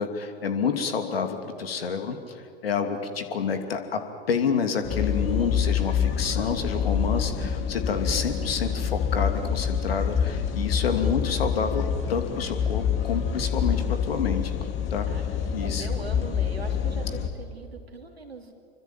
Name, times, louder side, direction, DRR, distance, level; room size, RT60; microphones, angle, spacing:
voice 1, 0.0-2.4 2.6-4.0 4.3-11.8 12.1-14.5 14.9-15.2 15.5-15.9, left 6 dB, 70° left, 6 dB, 2.9 m, -28 dB
sound 1, 4.8-17.3, left 7 dB, 40° left, 2.8 m, -27 dB
voice 2, 15.0-18.5, right 4 dB, 85° right, 4 dB, 3.2 m, -41 dB
27.0 x 24.0 x 9.0 m, 2.4 s
figure-of-eight pair, 85°, 30 cm